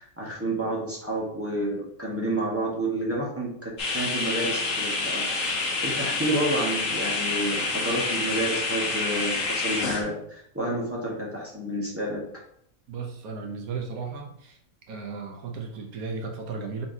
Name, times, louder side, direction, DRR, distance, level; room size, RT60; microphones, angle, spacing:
voice 1, 0.0-12.2, right 1 dB, 10° right, -5 dB, 1.1 m, -30 dB
sound 1, 3.8-10.0, left 3 dB, 65° left, 1.3 m, -28 dB
voice 2, 12.9-14.6 14.9-16.9, right 4 dB, 80° right, 2 dB, 1.3 m, -35 dB
4.3 x 4.0 x 2.7 m, 0.70 s
omnidirectional pair, 1.5 m